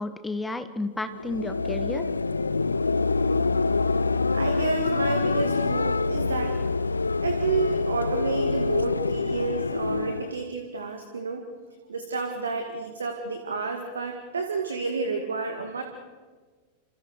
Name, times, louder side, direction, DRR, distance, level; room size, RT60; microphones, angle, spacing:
voice 1, 0.0-2.0, left 2 dB, 10° left, 10 dB, 1.6 m, -32 dB
sound 1, 1.1-10.5, left 3 dB, 80° left, 0.6 m, -26 dB
voice 2, 4.3-6.6 7.2-11.4 11.9-15.8, right 4 dB, 70° right, 5 dB, 2.1 m, -30 dB
29.5 x 27.0 x 4.7 m, 1.4 s
figure-of-eight pair, 90°, 0 cm